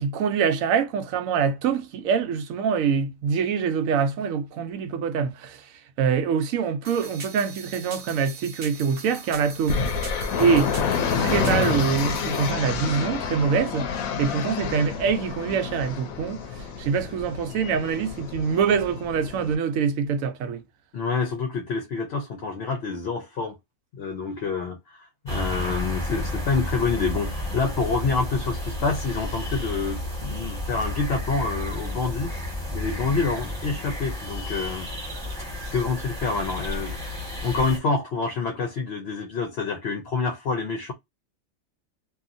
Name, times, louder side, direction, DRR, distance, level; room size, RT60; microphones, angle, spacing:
voice 1, 0.0-5.7 6.0-9.8 10.4-10.7 11.2-13.9 14.2-20.6, right 6 dB, 80° right, 1.0 m, -24 dB
sound 1, 6.8-12.5, right 5 dB, 50° right, 0.9 m, -41 dB
sound 2, 9.7-19.6, left 6 dB, 85° left, 1.0 m, -28 dB
voice 2, 20.9-23.6 23.9-32.3 32.7-34.9 35.7-40.9, left 4 dB, 60° left, 0.8 m, -27 dB
sound 3, 25.3-37.8, left 1 dB, 5° left, 1.2 m, -32 dB
2.7 x 2.4 x 2.5 m
omnidirectional pair, 1.4 m